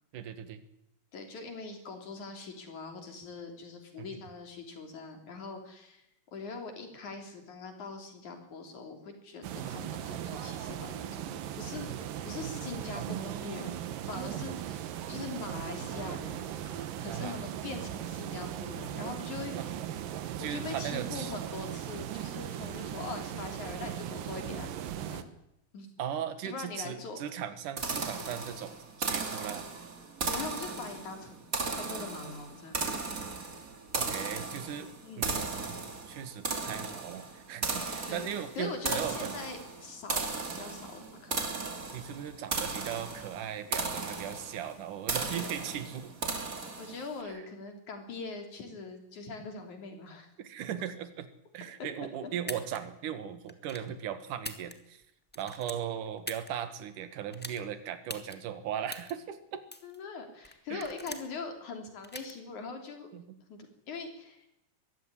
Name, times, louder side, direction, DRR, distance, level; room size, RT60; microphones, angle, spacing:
voice 1, 0.1-0.6 4.0-4.2 9.6-9.8 12.9-13.8 17.1-17.4 19.6-19.7 20.4-21.3 26.0-29.7 33.9-34.9 35.2-35.8 36.1-39.3 41.9-46.1 47.2-47.3 50.4-51.3 51.5-55.0 55.4-59.6 60.7-61.2 63.1-63.4, right 9 dB, 70° right, 11 dB, 3.1 m, -38 dB
voice 2, 1.1-6.0 6.3-11.9 12.2-13.8 14.1-19.8 20.4-24.7 25.1-25.3 25.7-25.9 26.4-27.2 30.2-32.8 35.0-35.3 38.1-38.3 38.5-40.2 40.5-41.3 46.8-50.3 51.8-51.9 59.8-63.1 63.5-64.5, left 4 dB, 60° left, 4 dB, 4.6 m, -42 dB
sound 1, 9.4-25.2, right 10 dB, 85° right, 3.0 m, -38 dB
sound 2, 27.8-47.1, right 4 dB, 30° right, 2.3 m, -36 dB
sound 3, 52.4-52.8 53.5-53.9 54.3-55.0 55.3-56.5 57.3-57.6 58.1-58.4 58.9-59.1 59.7-60.0 60.4-61.4 62.0-62.3, left 1 dB, 15° left, 0.4 m, -42 dB
23.0 x 15.0 x 9.9 m, 0.84 s
omnidirectional pair, 3.8 m